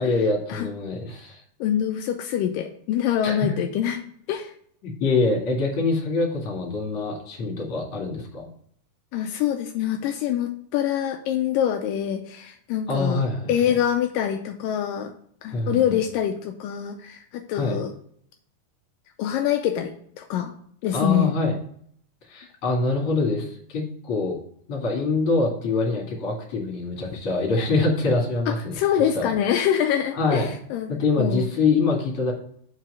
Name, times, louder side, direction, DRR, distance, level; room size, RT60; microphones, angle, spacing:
voice 1, 0.0-1.4 3.2-3.5 4.8-8.5 12.9-13.5 15.5-15.8 17.5-17.8 20.9-21.6 22.3-24.4 24.7-28.8 29.2-29.3 30.2-30.5 30.9-32.3, left 3 dB, 45° left, -1 dB, 2.7 m, -24 dB
voice 2, 1.6-4.0 4.3-4.5 9.1-13.2 13.5-15.1 15.4-17.9 19.2-20.5 20.8-21.3 28.5-31.4, left 10 dB, 80° left, 5 dB, 2.1 m, -25 dB
5.8 x 4.6 x 6.1 m, 0.62 s
omnidirectional pair, 4.1 m